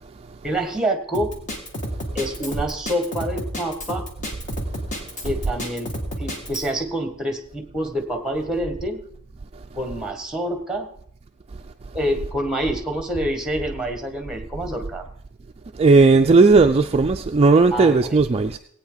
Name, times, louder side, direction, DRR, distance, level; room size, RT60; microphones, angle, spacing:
voice 1, 0.4-1.3 2.1-4.1 5.2-5.9 6.2-9.0 9.7-10.9 11.9-15.0 17.7-18.1, right 1 dB, 5° right, 1.6 m, -27 dB
Drum kit, 1.1-6.7, equal, 35° left, 2.1 m, -31 dB
voice 2, 15.8-18.6, right 3 dB, 30° right, 0.4 m, -15 dB
18.5 x 8.8 x 4.0 m
head